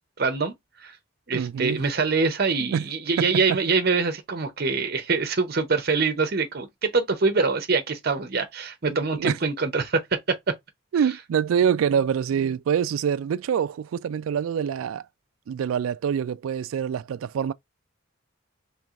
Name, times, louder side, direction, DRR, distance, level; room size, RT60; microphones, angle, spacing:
voice 1, 0.2-0.5 0.8-1.0 1.3-10.5, right 4 dB, 50° right, 0.7 m, -24 dB
voice 2, 1.3-1.8 2.6-2.9 3.2-3.6 8.9-9.4 10.9-15.0 15.5-17.5, right 8 dB, 85° right, 0.3 m, -25 dB
4.6 x 3.2 x 2.4 m
head